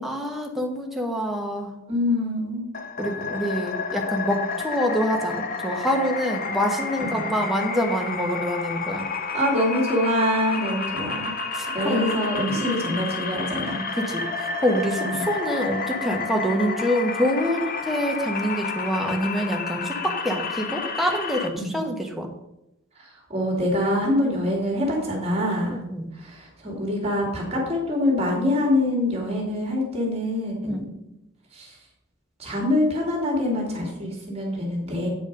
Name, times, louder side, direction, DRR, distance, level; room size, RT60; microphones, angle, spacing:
voice 1, 0.0-1.7 3.0-9.0 11.5-12.2 12.5-13.0 13.9-22.3 25.7-26.1 30.7-30.9, equal, ahead, 1 dB, 1.2 m, -26 dB
voice 2, 1.9-2.6 7.1-7.3 9.3-11.3 11.7-13.8 15.0-15.2 21.6-21.7 23.0-25.8 26.1-30.9 31.5-31.8 32.4-35.1, left 1 dB, 30° right, -1 dB, 2.3 m, -25 dB
sound 1, 2.7-21.5, left 4 dB, 45° left, 0.8 m, -30 dB
8.9 x 5.0 x 5.3 m, 0.87 s
head